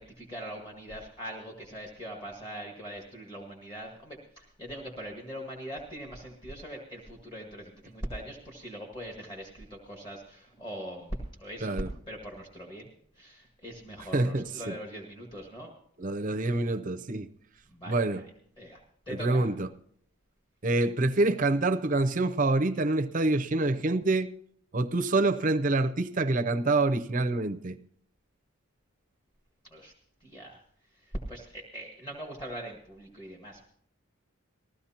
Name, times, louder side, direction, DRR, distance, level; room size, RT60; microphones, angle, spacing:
voice 1, 0.0-15.7 17.7-19.5 29.7-29.9 30.2-30.6 30.9-33.7, right 1 dB, 20° left, 1.7 m, -41 dB
voice 2, 14.1-14.8 16.0-17.3 17.9-18.2 19.1-19.7 20.6-24.3 24.7-27.8, right 2 dB, 40° right, 0.6 m, -26 dB
19.5 x 15.0 x 2.9 m
head